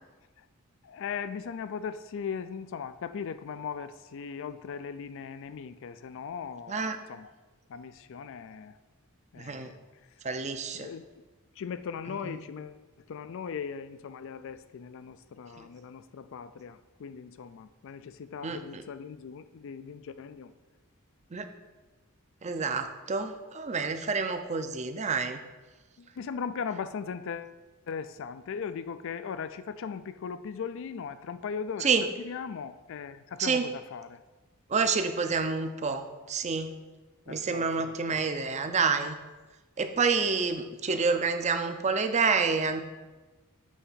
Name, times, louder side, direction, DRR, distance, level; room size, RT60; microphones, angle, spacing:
voice 1, 0.8-7.3 7.7-8.7 9.3-9.8 10.7-11.2 11.6-12.8 13.1-20.5 26.0-27.5 27.9-31.9 32.2-34.2 37.3-38.2, left 6 dB, 60° left, 13 dB, 0.4 m, -38 dB
voice 2, 9.3-9.7 10.2-10.9 12.2-12.4 15.6-15.7 18.4-18.8 21.3-21.5 22.4-25.4 31.8-32.1 33.4-33.7 34.7-36.8 37.3-39.2 39.8-42.8, right 5 dB, 30° right, 8 dB, 0.5 m, -28 dB
8.3 x 3.3 x 5.5 m, 1.2 s
head